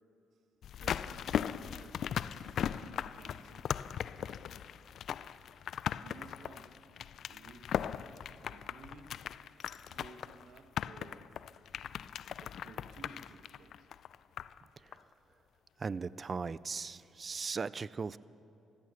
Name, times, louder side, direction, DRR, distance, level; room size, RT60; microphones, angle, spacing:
sound 1, 0.6-14.6 14.9-15.0, left 9 dB, 65° left, 0.3 m, -38 dB
voice 1, 0.8-2.0 2.7-3.7 4.0-4.5 6.0-6.7 7.3-8.0 8.4-9.2 9.8-11.4 12.4-13.9, right 4 dB, 70° right, 7 dB, 1.2 m, -56 dB
voice 2, 15.8-18.2, right 5 dB, 35° right, 19 dB, 0.3 m, -38 dB
15.0 x 14.0 x 6.9 m, 2.8 s
cardioid pair, 90°, 0 cm